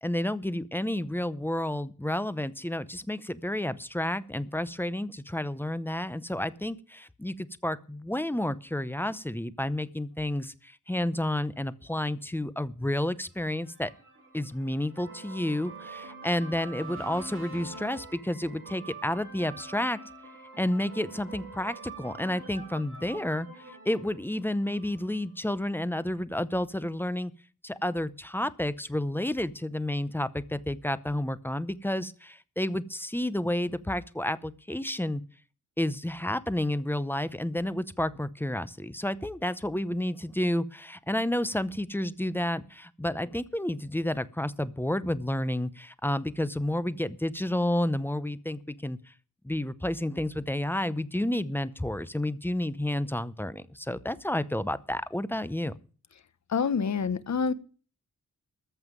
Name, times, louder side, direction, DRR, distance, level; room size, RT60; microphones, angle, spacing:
voice 1, 0.0-13.9 14.3-20.0 20.6-27.3 27.6-35.2 35.8-49.0 49.4-55.7, left 1 dB, 5° left, 0.7 m, -30 dB
sound 1, 13.4-25.2, right 3 dB, 40° right, 6.5 m, -45 dB
voice 2, 56.5-57.5, left 5 dB, 55° left, 1.0 m, -27 dB
14.5 x 5.6 x 9.1 m
wide cardioid pair, 170°, 33 cm